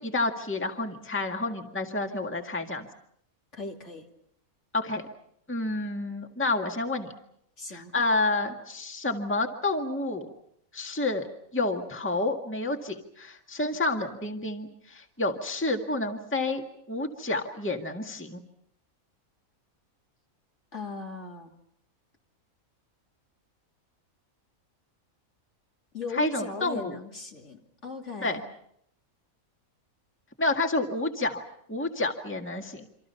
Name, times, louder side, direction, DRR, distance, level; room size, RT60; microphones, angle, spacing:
voice 1, 0.0-2.9 4.7-5.0 5.5-7.1 7.7-10.3 10.7-18.4 26.1-27.0 28.2-28.4 30.4-31.4 31.7-32.8, left 2 dB, 10° left, 3 dB, 1.8 m, -29 dB
voice 2, 3.5-4.1 7.6-7.9 20.7-21.5 25.9-28.4, left 4 dB, 55° left, 1 dB, 3.1 m, -38 dB
28.0 x 26.0 x 5.7 m, 0.71 s
omnidirectional pair, 1.5 m